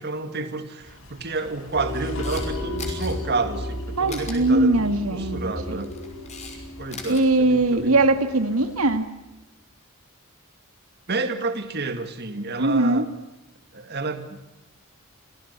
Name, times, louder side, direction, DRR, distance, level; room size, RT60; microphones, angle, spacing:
voice 1, 0.0-5.9 6.8-7.9 11.1-13.1 13.7-14.4, right 3 dB, 50° right, 8 dB, 2.1 m, -30 dB
sound 1, 0.8-9.0, left 2 dB, 60° left, 4.9 m, -43 dB
sound 2, 1.7-8.3, left 1 dB, 85° left, 7.7 m, -34 dB
Camera, 2.0-2.5 2.8-3.1 4.1-4.4 5.6-6.6 6.8-7.2, left 5 dB, 30° left, 5.7 m, -38 dB
voice 2, 4.0-5.8 7.1-9.1 12.6-13.1, right 2 dB, 75° right, 9 dB, 2.0 m, -21 dB
27.0 x 18.0 x 8.2 m, 1.0 s
head